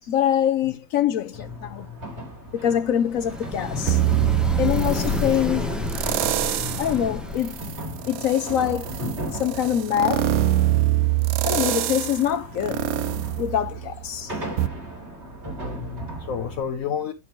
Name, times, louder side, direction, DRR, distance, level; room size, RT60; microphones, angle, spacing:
voice 1, 0.1-1.9 2.5-4.0 4.6-5.8 6.8-7.6 8.1-9.0 9.3-10.3 11.4-12.8 13.4-14.3, left 10 dB, 70° left, 0.8 m, -24 dB
sound 1, 1.3-16.6, right 1 dB, 30° right, 3.2 m, -37 dB
sound 2, 3.1-7.8, left 2 dB, ahead, 0.7 m, -29 dB
sound 3, 3.9-5.3 5.9-7.0 7.4-14.1 14.6-14.7, right 14 dB, 80° right, 0.8 m, -24 dB
voice 2, 15.6-17.1, left 7 dB, 50° left, 1.1 m, -31 dB
11.0 x 5.9 x 3.1 m
omnidirectional pair, 2.2 m